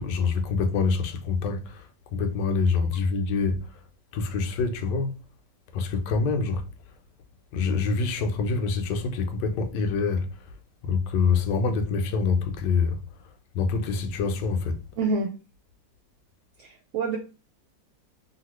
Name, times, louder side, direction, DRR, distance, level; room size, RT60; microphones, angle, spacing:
voice 1, 0.0-3.7 4.1-5.1 5.7-6.6 7.5-10.3 10.8-13.0 13.5-14.8, left 4 dB, 75° left, 1.2 m, -25 dB
voice 2, 15.0-15.3 16.6-17.2, right 3 dB, 80° right, 0.7 m, -27 dB
2.8 x 2.6 x 3.0 m
omnidirectional pair, 2.0 m